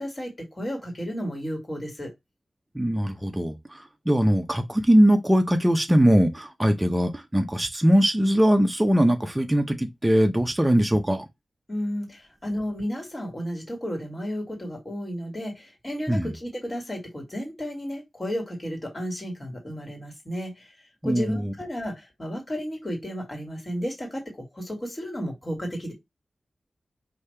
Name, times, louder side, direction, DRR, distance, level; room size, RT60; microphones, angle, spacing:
voice 1, 0.0-2.1 11.7-20.7 21.0-24.2 24.5-25.9, equal, 25° left, 2.0 m, -33 dB
voice 2, 2.7-3.5 4.1-11.2 16.1-16.3 21.0-21.5, equal, 10° right, 0.6 m, -21 dB
5.1 x 2.8 x 3.3 m
wide cardioid pair, 140°, 0 cm